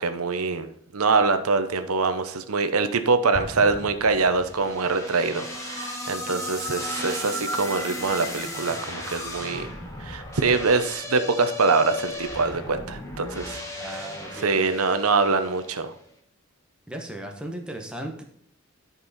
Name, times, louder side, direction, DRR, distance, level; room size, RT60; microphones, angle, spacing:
voice 1, 0.0-9.7 10.0-14.1 14.4-15.9, right 4 dB, 90° right, 9 dB, 0.8 m, -24 dB
Explosion, 3.3-5.0, right 1 dB, 40° right, 0.8 m, -39 dB
sound 1, 4.4-15.7, left 1 dB, 15° left, 1.4 m, -35 dB
voice 2, 13.8-14.7 16.9-18.2, right 1 dB, 5° right, 2 dB, 1.0 m, -36 dB
10.5 x 5.5 x 4.2 m, 0.67 s
head